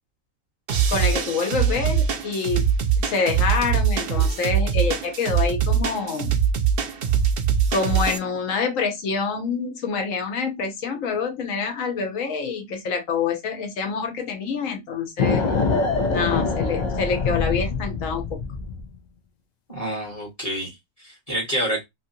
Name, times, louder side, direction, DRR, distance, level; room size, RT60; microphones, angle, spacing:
sound 1, 0.7-8.2, right 7 dB, 60° right, 0.6 m, -22 dB
voice 1, 0.9-2.7 3.0-6.3 7.7-15.5 16.1-18.4, left 5 dB, 70° left, 1.2 m, -26 dB
sound 2, 15.2-18.9, left 4 dB, 90° left, 0.3 m, -24 dB
voice 2, 19.7-21.8, right 1 dB, 30° left, 1.2 m, -28 dB
2.9 x 2.6 x 2.6 m
omnidirectional pair, 1.5 m